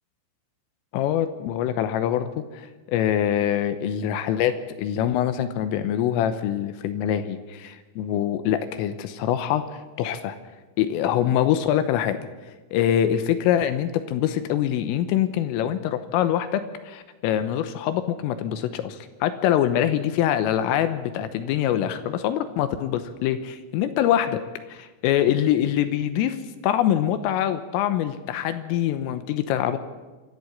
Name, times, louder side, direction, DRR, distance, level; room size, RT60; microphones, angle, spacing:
voice 1, 0.9-10.4 10.8-12.2 12.7-24.4 24.7-26.4 26.6-29.8, left 10 dB, 85° left, 10 dB, 3.5 m, -24 dB
26.0 x 13.0 x 8.0 m, 1.3 s
omnidirectional pair, 5.9 m